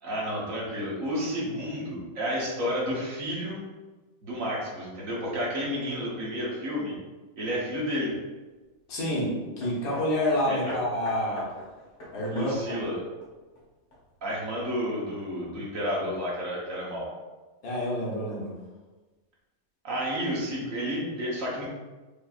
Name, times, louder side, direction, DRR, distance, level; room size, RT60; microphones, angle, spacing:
voice 1, 0.0-3.6 4.2-6.9 7.4-8.1 10.5-10.7 12.3-13.0 14.2-17.1 19.8-21.7, equal, 65° right, -5 dB, 1.4 m, -31 dB
voice 2, 8.9-11.5 12.1-12.8 17.6-18.5, left 1 dB, 85° left, -6 dB, 1.6 m, -28 dB
Hammer, 9.6-14.3 15.2-15.3, left 1 dB, 55° left, 1.4 m, -43 dB
5.1 x 2.8 x 2.4 m, 1.2 s
omnidirectional pair, 1.5 m